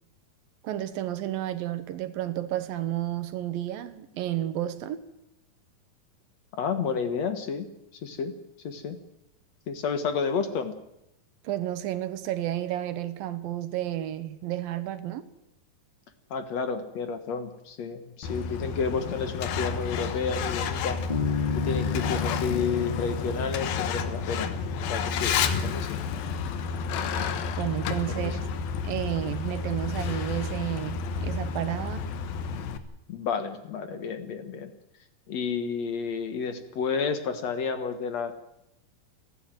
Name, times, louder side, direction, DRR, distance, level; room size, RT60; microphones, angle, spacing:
voice 1, 0.6-5.0 11.4-15.2 27.6-28.4 28.8-32.1, right 13 dB, 85° right, 3.0 m, -31 dB
voice 2, 6.6-7.7 8.0-8.3 8.6-9.0 9.7-10.8 16.3-21.0 21.6-24.5 24.9-25.4 25.6-26.0 28.1-28.4 33.1-34.7 35.3-38.3, left 5 dB, 60° left, 2.3 m, -31 dB
Truck, 18.2-32.8, left 5 dB, 85° left, 3.0 m, -31 dB
Bass guitar, 21.1-24.8, left 6 dB, 20° left, 1.2 m, -32 dB
29.0 x 11.5 x 9.1 m
omnidirectional pair, 4.0 m